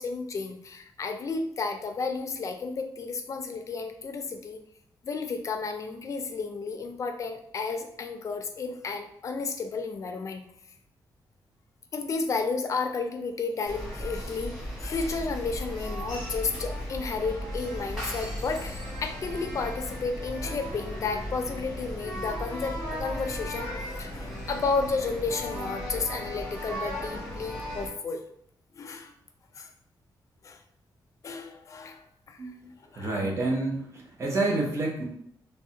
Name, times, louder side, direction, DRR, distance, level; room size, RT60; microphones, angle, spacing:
voice 1, 0.0-4.6 5.0-10.4 11.9-23.7 24.0-28.2 28.7-29.1 29.5-29.7 30.4-30.6 31.2-32.4 32.9-33.2, left 4 dB, 40° left, 6 dB, 0.4 m, -32 dB
sound 1, 13.6-27.9, equal, 5° right, 1.1 m, -36 dB
voice 2, 33.0-35.0, right 2 dB, 35° right, -1 dB, 0.7 m, -28 dB
3.3 x 2.1 x 2.7 m, 0.71 s
wide cardioid pair, 145°, 8 cm